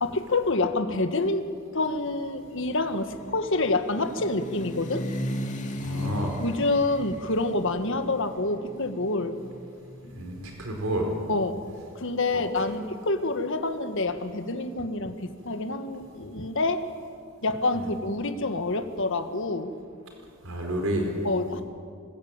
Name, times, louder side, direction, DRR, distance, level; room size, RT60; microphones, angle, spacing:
voice 1, 0.0-5.0 6.4-9.4 11.3-11.7 11.9-16.8 17.4-19.7 21.2-21.6, left 2 dB, 65° left, 8 dB, 1.6 m, -27 dB
sound 1, 2.2-10.2, left 1 dB, 35° left, 2.5 m, -37 dB
voice 2, 5.8-6.4 10.1-11.1 12.3-12.4 17.8-17.9 20.4-21.1, right 1 dB, 85° right, 2 dB, 4.4 m, -30 dB
26.0 x 20.5 x 8.9 m, 2.2 s
head